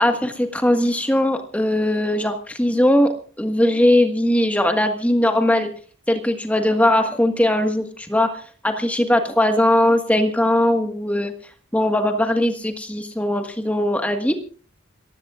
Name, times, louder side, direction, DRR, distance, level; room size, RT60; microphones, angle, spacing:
voice 1, 0.0-5.7 6.1-11.3 11.7-14.4, left 1 dB, 5° left, 6 dB, 1.5 m, -19 dB
27.0 x 15.0 x 2.4 m, 0.41 s
head